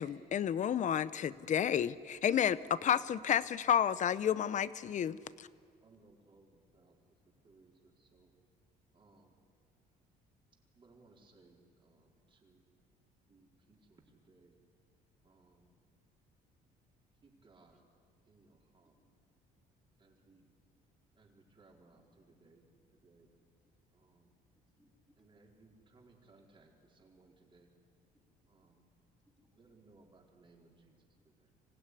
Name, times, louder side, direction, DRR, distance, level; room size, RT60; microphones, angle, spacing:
voice 1, 0.0-5.5, left 9 dB, 45° left, 16 dB, 0.8 m, -31 dB
voice 2, 2.7-3.5 5.8-8.3 8.9-9.4 10.7-12.7 13.3-14.6 15.2-15.7 17.2-17.8 18.2-19.0 20.0-20.5 21.2-23.3 23.9-24.3 25.2-27.7 28.5-28.9 29.5-31.0 31.2-31.5, right 3 dB, 30° right, 0 dB, 4.3 m, -65 dB
voice 3, 24.7-25.2 28.1-28.7 29.2-29.8 31.5-31.6, equal, 5° right, -3 dB, 3.5 m, -74 dB
25.5 x 16.5 x 10.0 m, 2.1 s
cardioid pair, 110°, 17 cm